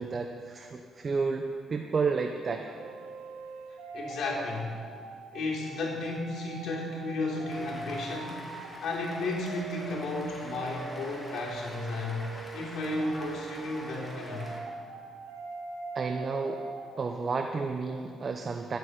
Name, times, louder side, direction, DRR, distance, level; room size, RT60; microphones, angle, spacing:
voice 1, 0.0-2.6 15.9-16.6 17.0-18.8, right 4 dB, 40° right, 4 dB, 0.9 m, -31 dB
sound 1, 2.7-17.0, right 4 dB, 90° right, 1.4 m, -43 dB
voice 2, 3.9-4.8 5.3-8.5 8.8-14.5, left 2 dB, 70° left, -3 dB, 3.7 m, -33 dB
Cheering / Applause, 7.5-14.6, left 1 dB, 15° left, 2.8 m, -45 dB
11.5 x 8.0 x 9.5 m, 2.2 s
cardioid pair, 90°, 0 cm